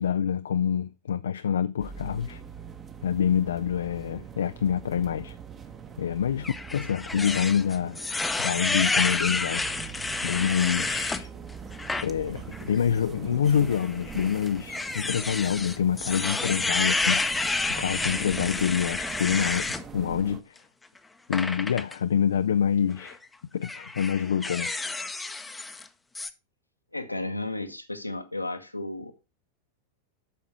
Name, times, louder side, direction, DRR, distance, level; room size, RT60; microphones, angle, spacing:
voice 1, 0.0-2.4 3.0-5.4 6.0-8.0 8.4-9.6 10.2-11.3 12.0-17.2 17.8-20.5 21.3-23.2 23.5-24.7, left 8 dB, 65° left, 0.3 m, -26 dB
sound 1, 1.8-20.4, right 6 dB, 20° right, 1.1 m, -42 dB
sound 2, 6.4-11.2 11.7-12.1 12.5-12.6 13.7-19.8 21.3-21.9 22.9-23.1 23.6-25.9 26.1-26.3, left 3 dB, 10° left, 0.7 m, -30 dB
voice 2, 26.9-29.1, left 2 dB, 85° left, 1.1 m, -33 dB
8.5 x 6.5 x 4.6 m
figure-of-eight pair, 90°, 0 cm